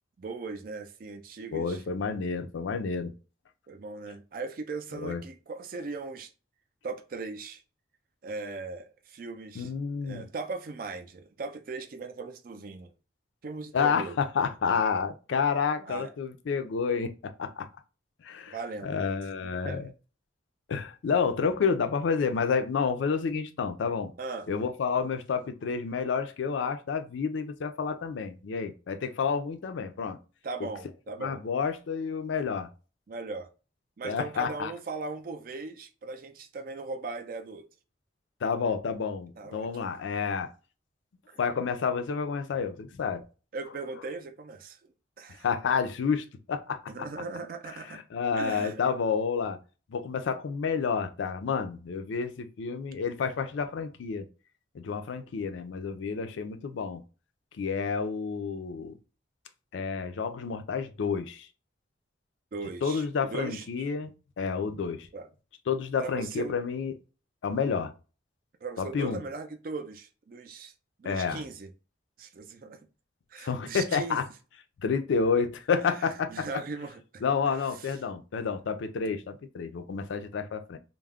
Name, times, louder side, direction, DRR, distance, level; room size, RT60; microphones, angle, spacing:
voice 1, 0.2-1.8 3.7-6.3 6.8-7.6 8.2-9.7 10.0-12.9 13.4-14.2 15.9-16.1 18.5-19.8 24.2-24.5 30.4-31.4 33.1-33.5 34.0-37.7 39.4-39.7 41.3-41.4 43.5-44.8 45.2-45.5 46.9-48.0 48.4-48.8 62.5-63.7 65.1-65.3 66.0-66.5 68.6-70.7 71.0-71.7 72.2-72.8 73.3-74.2 75.9-76.0 76.3-77.9 79.0-79.1, right 3 dB, 50° right, 0.4 m, -38 dB
voice 2, 1.5-3.1 4.9-5.2 9.6-10.2 13.7-17.7 18.2-18.6 18.8-19.9 20.7-24.1 24.5-30.2 31.2-32.7 34.0-34.7 38.4-40.5 41.4-43.2 45.4-46.8 47.9-49.6 49.9-54.3 54.7-57.0 57.6-59.0 59.7-61.5 62.8-64.1 64.4-65.1 65.7-66.9 67.4-67.9 68.8-69.2 71.0-71.4 73.4-74.2 74.8-76.6 77.2-80.8, left 5 dB, 80° left, 0.4 m, -29 dB
2.3 x 2.0 x 3.4 m
head